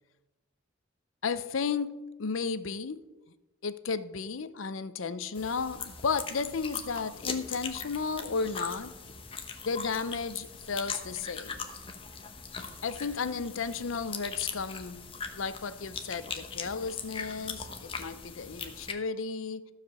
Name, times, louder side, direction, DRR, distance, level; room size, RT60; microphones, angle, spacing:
voice 1, 1.2-3.1 3.6-8.9 9.6-11.7 12.8-19.7, left 5 dB, 90° left, 14 dB, 0.6 m, -34 dB
sound 1, 5.3-18.9, left 5 dB, 25° left, 1.0 m, -40 dB
14.5 x 5.0 x 7.0 m, 1.1 s
head